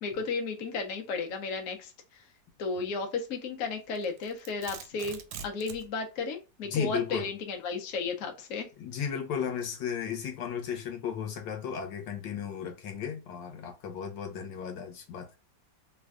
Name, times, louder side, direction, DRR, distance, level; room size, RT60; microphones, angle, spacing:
voice 1, 0.0-2.2 2.6-8.7, left 4 dB, 60° left, 0.9 m, -34 dB
Domestic sounds home sounds, 4.0-5.9, right 7 dB, 85° right, 1.3 m, -43 dB
voice 2, 6.6-7.3 8.8-15.4, left 8 dB, 85° left, 1.5 m, -35 dB
3.3 x 2.2 x 3.4 m
omnidirectional pair, 2.0 m